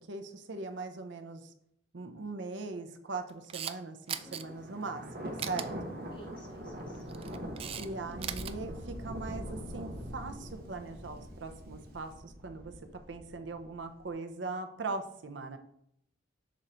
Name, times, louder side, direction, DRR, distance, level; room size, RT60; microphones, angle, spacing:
voice 1, 0.1-1.5 1.9-6.0 7.8-12.7 13.1-15.6, right 3 dB, 70° right, 7 dB, 0.7 m, -40 dB
Camera, 3.3-3.8 4.1-4.4 5.4-5.7 6.9-8.5, right 9 dB, 30° right, 0.3 m, -38 dB
Thunder, 4.1-14.0, equal, 55° right, 1.1 m, -43 dB
voice 2, 4.2-4.5 6.1-7.1, right 1 dB, 25° left, 1 dB, 1.2 m, -53 dB
6.2 x 3.9 x 4.3 m, 0.73 s
head